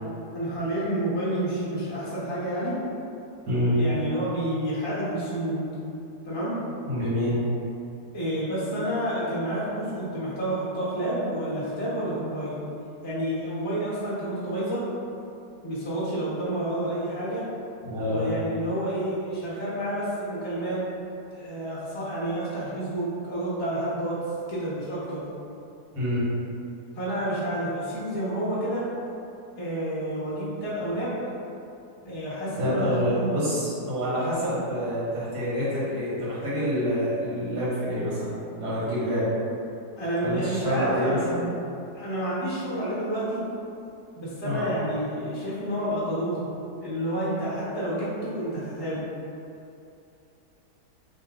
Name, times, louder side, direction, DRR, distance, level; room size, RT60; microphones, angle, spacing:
voice 1, 0.3-2.7 3.7-5.7 6.2-6.6 8.1-12.6 13.0-14.8 15.6-17.4 18.1-20.8 21.3-24.2 24.5-25.2 26.9-28.8 29.6-31.1 32.0-33.4 40.0-41.4 41.9-43.4 44.1-46.5 46.8-49.1, right 1 dB, 20° left, -9 dB, 0.8 m, -29 dB
voice 2, 3.5-3.9 6.9-7.4 17.8-18.4 25.9-26.3 32.6-38.3 38.6-39.3 40.2-41.4 44.4-44.7, equal, 70° right, -8 dB, 1.8 m, -27 dB
3.4 x 2.8 x 3.7 m, 2.6 s
omnidirectional pair, 1.8 m